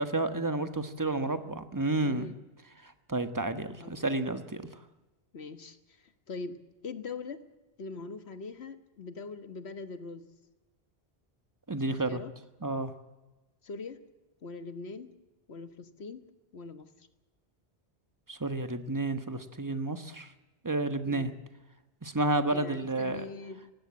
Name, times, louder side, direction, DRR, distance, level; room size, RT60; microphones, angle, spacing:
voice 1, 0.0-2.3 3.1-4.7 11.7-12.2 12.6-12.9 18.3-20.3 20.6-21.3 22.0-23.2, right 2 dB, 20° right, 9 dB, 1.3 m, -31 dB
voice 2, 2.0-2.4 3.8-4.1 5.3-6.6 6.8-7.4 7.8-10.3 11.9-12.3 13.6-14.0 14.4-15.1 15.5-16.2 16.5-17.1 21.0-21.3 22.5-23.7, left 4 dB, 75° left, 10 dB, 1.6 m, -42 dB
18.5 x 16.5 x 8.5 m, 1.1 s
omnidirectional pair, 1.1 m